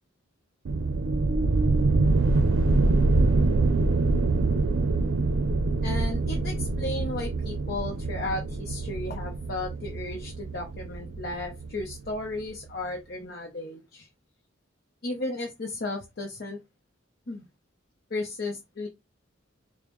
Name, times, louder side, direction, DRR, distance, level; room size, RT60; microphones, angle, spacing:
sound 1, 0.7-12.1, right 3 dB, 85° right, 0.5 m, -25 dB
voice 1, 5.8-14.1 15.0-16.6 17.3-17.5 18.1-18.9, left 2 dB, 50° left, 1 dB, 0.7 m, -34 dB
5.1 x 2.1 x 3.0 m, 0.21 s
head